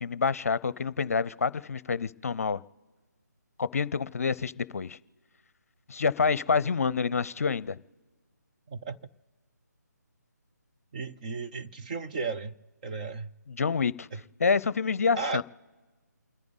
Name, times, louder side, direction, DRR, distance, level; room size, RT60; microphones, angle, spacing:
voice 1, 0.0-2.6 3.6-5.0 5.9-7.8 13.5-14.1 14.4-15.4, left 5 dB, 55° left, 0.7 m, -27 dB
voice 2, 10.9-12.5 12.8-13.3 14.1-14.2 15.2-15.4, right 4 dB, 25° right, 0.8 m, -34 dB
29.0 x 10.5 x 4.1 m
figure-of-eight pair, 155°, 10 cm